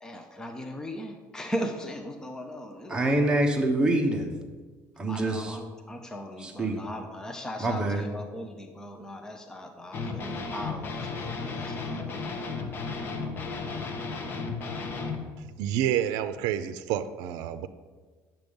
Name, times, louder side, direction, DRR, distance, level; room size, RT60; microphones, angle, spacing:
voice 1, 0.0-3.0 5.1-12.4, equal, 10° left, 0.8 m, -38 dB
voice 2, 2.9-4.3 5.0-5.6 6.4-6.8 7.6-8.0, right 1 dB, 15° right, 1.2 m, -25 dB
sound 1, 9.9-15.2, left 4 dB, 35° left, 1.1 m, -34 dB
voice 3, 15.6-17.7, right 10 dB, 80° right, 0.5 m, -28 dB
9.3 x 7.4 x 5.3 m
cardioid pair, 140°, 6 cm